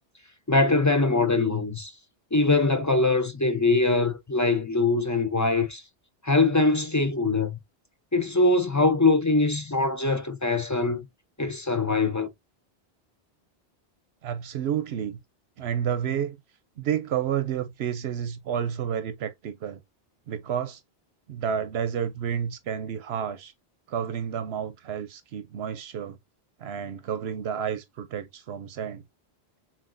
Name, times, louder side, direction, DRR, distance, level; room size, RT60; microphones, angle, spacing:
voice 1, 0.5-1.9 2.3-5.8 6.2-7.6 8.1-11.0 11.4-12.3, left 3 dB, 25° left, 0.4 m, -22 dB
voice 2, 14.2-15.2 15.6-16.4 16.8-19.8 20.3-20.8 21.3-23.5 23.9-26.2 26.6-29.0, right 8 dB, 80° right, 0.9 m, -30 dB
7.4 x 2.6 x 2.5 m
omnidirectional pair, 1.1 m